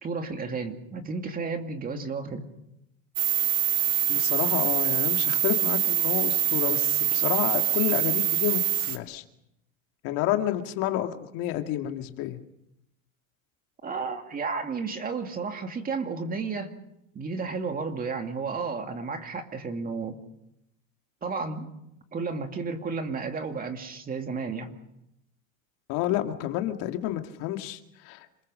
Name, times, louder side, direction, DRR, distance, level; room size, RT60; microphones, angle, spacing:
voice 1, 0.0-2.5 13.8-16.7 17.1-20.2 21.2-21.7 22.1-24.7, right 4 dB, 20° right, 5 dB, 2.4 m, -32 dB
sound 1, 3.2-9.0, right 11 dB, 90° right, 2.5 m, -25 dB
voice 2, 4.1-9.2 10.0-12.4 25.9-28.3, left 13 dB, 55° left, 5 dB, 2.2 m, -30 dB
27.5 x 21.0 x 6.4 m, 0.82 s
supercardioid pair, 140°, 41 cm